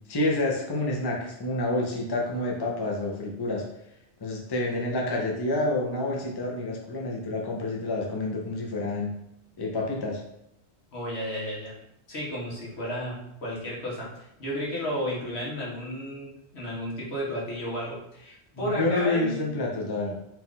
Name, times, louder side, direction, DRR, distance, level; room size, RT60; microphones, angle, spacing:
voice 1, 0.1-3.7 4.2-9.1 9.6-10.2 18.5-20.2, left 2 dB, 30° left, -1 dB, 0.6 m, -28 dB
voice 2, 10.9-11.8 12.1-19.5, equal, 70° left, -6 dB, 1.6 m, -33 dB
4.4 x 2.6 x 3.7 m, 0.81 s
omnidirectional pair, 1.1 m